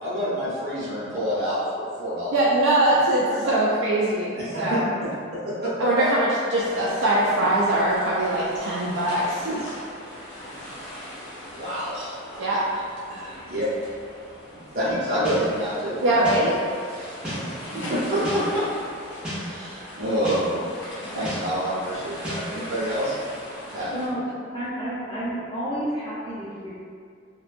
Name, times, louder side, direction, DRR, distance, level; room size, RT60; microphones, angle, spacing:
voice 1, 0.0-2.4 2.9-3.5 4.3-5.1 5.6-5.7 9.4-9.8 11.5-12.2 13.1-13.7 14.7-16.4 16.9-18.6 19.3-20.7 21.1-23.2 23.7-23.9, equal, 55° right, -10 dB, 0.7 m, -28 dB
voice 2, 2.3-4.8 5.8-9.5 12.4-12.8 16.0-16.6, right 1 dB, 85° right, -7 dB, 0.3 m, -22 dB
sound 1, 6.5-24.1, equal, 80° left, 0.7 m, -40 dB
sound 2, 15.3-15.4 16.2-16.4 17.2-17.4 18.3-18.4 19.2-19.4 20.2-20.4 21.3-21.4 22.2-22.4, equal, 5° right, 0.5 m, -31 dB
voice 3, 23.9-26.7, equal, 25° left, -11 dB, 0.8 m, -30 dB
2.6 x 2.2 x 2.5 m, 2.2 s
head